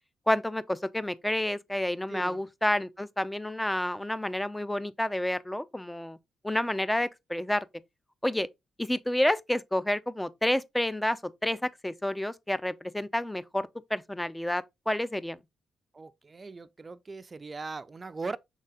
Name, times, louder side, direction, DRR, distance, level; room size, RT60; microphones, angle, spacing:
voice 1, 0.3-6.2 6.4-7.7 8.2-8.5 8.8-15.4, left 1 dB, 10° left, 0.6 m, -29 dB
voice 2, 2.1-2.4 15.9-18.4, right 3 dB, 35° right, 0.5 m, -39 dB
6.4 x 4.0 x 3.7 m
cardioid pair, 65°, 0 cm